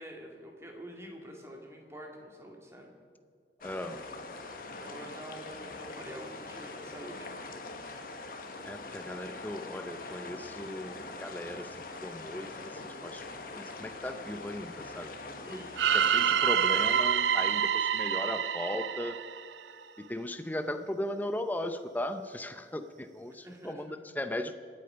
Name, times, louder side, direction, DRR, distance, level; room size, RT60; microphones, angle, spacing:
voice 1, 0.0-2.9 4.7-7.3 15.4-15.8 23.3-24.0, right 1 dB, 15° right, 0 dB, 2.3 m, -47 dB
sound 1, 3.6-17.0, left 3 dB, 55° left, 1.4 m, -43 dB
voice 2, 3.6-4.0 8.6-11.7 12.0-12.5 13.0-13.3 13.5-15.1 15.5-15.6 15.9-19.2 20.0-24.5, left 1 dB, 10° left, 9 dB, 0.6 m, -37 dB
sound 2, 15.8-19.8, right 8 dB, 90° right, 0.5 m, -27 dB
25.0 x 8.7 x 5.7 m, 2.1 s
head